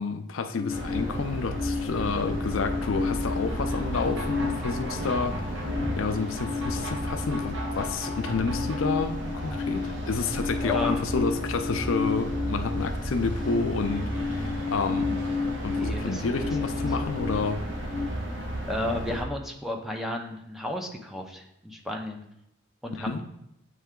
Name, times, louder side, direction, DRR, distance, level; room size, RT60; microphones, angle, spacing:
voice 1, 0.0-5.6 6.0-15.2 15.6-17.6 23.0-23.2, left 4 dB, 80° left, 8 dB, 0.5 m, -30 dB
sound 1, 0.5-18.1, left 4 dB, 25° left, 0.3 m, -33 dB
sound 2, 0.7-19.2, equal, 65° right, 1.1 m, -33 dB
voice 2, 10.6-11.0 15.7-16.2 18.7-22.2 22.8-23.2, left 1 dB, ahead, 2 dB, 0.7 m, -33 dB
8.5 x 3.3 x 3.7 m, 0.79 s
head